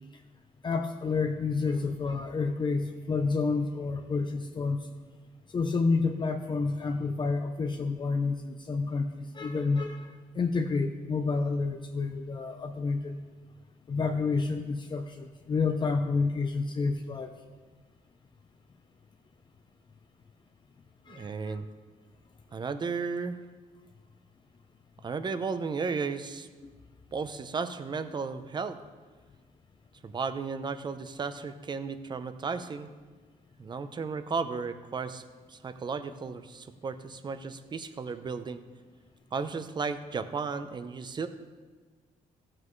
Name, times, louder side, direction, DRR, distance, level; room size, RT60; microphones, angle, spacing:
voice 1, 0.6-4.9 5.5-13.2 13.9-17.3 21.1-21.5, left 4 dB, 30° left, 4 dB, 0.6 m, -29 dB
voice 2, 21.1-21.7 22.5-23.4 25.0-26.5 27.1-28.8 30.0-32.9 33.6-35.2 35.5-38.6 39.3-41.3, right 5 dB, 30° right, 11 dB, 0.6 m, -34 dB
14.5 x 7.5 x 3.2 m, 1.4 s
cardioid pair, 115°, 14 cm